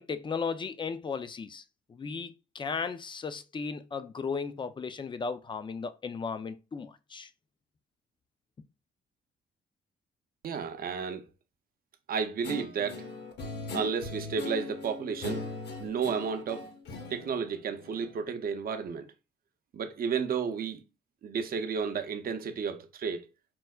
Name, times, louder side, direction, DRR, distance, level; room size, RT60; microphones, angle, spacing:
voice 1, 0.0-1.6 1.9-7.3, left 5 dB, 25° left, 0.3 m, -35 dB
voice 2, 10.4-11.2 12.1-13.0 13.7-15.5 15.8-16.7 17.1-19.1 19.7-20.8 21.2-23.3, right 6 dB, 50° right, 0.5 m, -32 dB
Guitar, 12.4-18.3, left 2 dB, 60° left, 0.8 m, -40 dB
4.4 x 2.0 x 2.3 m
cardioid pair, 90°, 20 cm